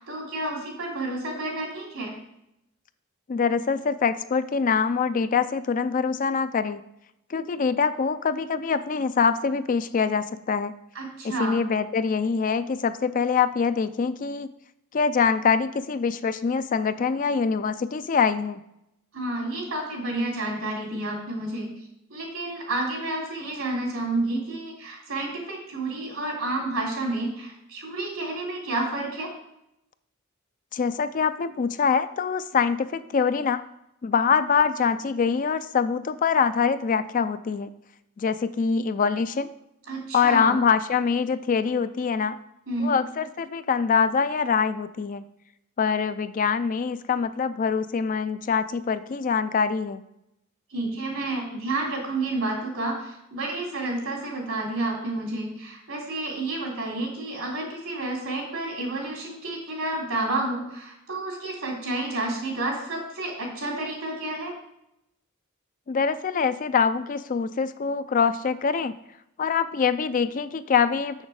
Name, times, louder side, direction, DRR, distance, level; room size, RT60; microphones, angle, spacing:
voice 1, 0.0-2.1 10.9-11.6 19.1-21.7 22.1-29.3 39.9-40.6 42.7-42.9 50.7-64.6, right 2 dB, 85° right, -1 dB, 3.0 m, -30 dB
voice 2, 3.3-6.8 7.3-10.7 11.2-14.5 14.9-18.6 30.7-33.6 34.0-37.7 38.2-39.5 40.1-42.4 42.8-45.2 45.8-50.0 65.9-68.9 69.4-71.2, left 6 dB, 40° left, 12 dB, 0.4 m, -24 dB
6.9 x 6.5 x 4.8 m, 0.82 s
head